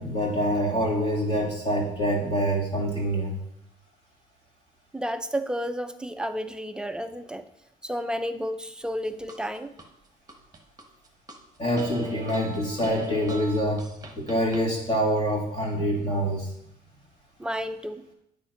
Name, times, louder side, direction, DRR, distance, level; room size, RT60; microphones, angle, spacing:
voice 1, 0.0-3.4 11.6-13.8 14.2-16.5, equal, 40° left, -4 dB, 2.6 m, -26 dB
voice 2, 4.9-7.5 7.8-9.7 17.4-18.0, equal, 5° right, 9 dB, 0.5 m, -31 dB
sound 1, 8.8-9.9 10.3-11.4 11.8-14.7, right 3 dB, 20° right, 1.2 m, -39 dB
8.2 x 4.4 x 5.8 m, 0.77 s
cardioid pair, 110°, 17 cm